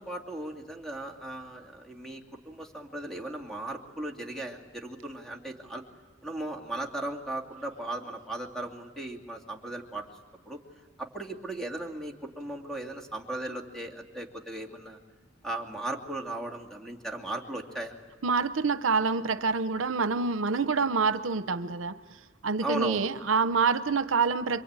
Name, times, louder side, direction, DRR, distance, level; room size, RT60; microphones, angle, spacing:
voice 1, 0.0-5.8 6.2-10.0 10.5-10.6 11.0-15.0 15.4-17.9 22.6-23.1, right 1 dB, ahead, 2.5 m, -37 dB
voice 2, 18.2-22.0 22.4-24.6, right 4 dB, 75° right, 0.8 m, -26 dB
27.5 x 24.0 x 8.9 m
head